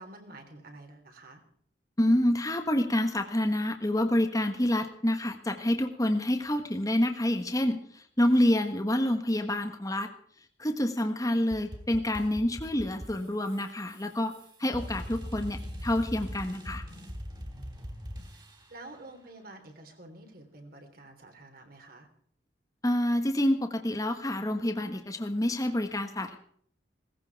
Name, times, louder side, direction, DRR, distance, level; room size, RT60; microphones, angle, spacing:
voice 1, 0.0-1.4 18.3-18.4 18.7-22.1, right 2 dB, 55° right, 5 dB, 3.4 m, -49 dB
voice 2, 2.0-10.1 10.6-14.3 14.6-16.8 22.8-26.4, left 1 dB, 20° left, 5 dB, 1.3 m, -27 dB
sound 1, 11.5-18.9, equal, 25° right, 3.1 m, -41 dB
18.0 x 15.0 x 4.7 m, 0.62 s
head